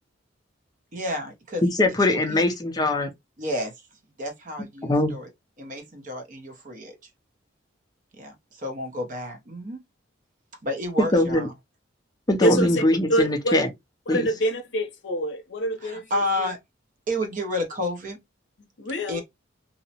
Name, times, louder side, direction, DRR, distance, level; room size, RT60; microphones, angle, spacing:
voice 1, 0.9-1.6 2.0-2.4 3.4-3.9 4.2-5.3 5.6-7.1 8.1-9.8 10.6-11.5 12.4-12.5 15.8-16.6 17.1-18.2 19.1-19.2, left 1 dB, 40° right, 0.7 m, -31 dB
voice 2, 1.6-3.1 4.9-5.1 11.1-11.5 12.3-13.7 14.1-14.3, left 1 dB, 20° left, 0.4 m, -21 dB
voice 3, 12.4-12.8 13.1-13.6 14.1-16.0 16.4-16.5 18.8-19.2, right 1 dB, 65° left, 0.6 m, -26 dB
2.7 x 2.0 x 2.7 m
head